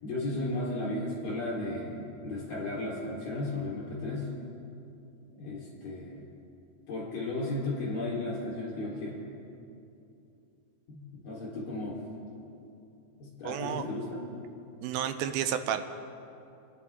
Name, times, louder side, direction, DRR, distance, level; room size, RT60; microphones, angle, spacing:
voice 1, 0.0-4.3 5.3-6.3 6.9-9.2 10.9-12.0 13.2-14.2, left 2 dB, 60° left, -6 dB, 5.3 m, -34 dB
voice 2, 13.5-13.8 14.8-15.8, right 9 dB, 80° right, 8 dB, 2.3 m, -31 dB
27.5 x 10.5 x 3.6 m, 2.7 s
omnidirectional pair, 4.5 m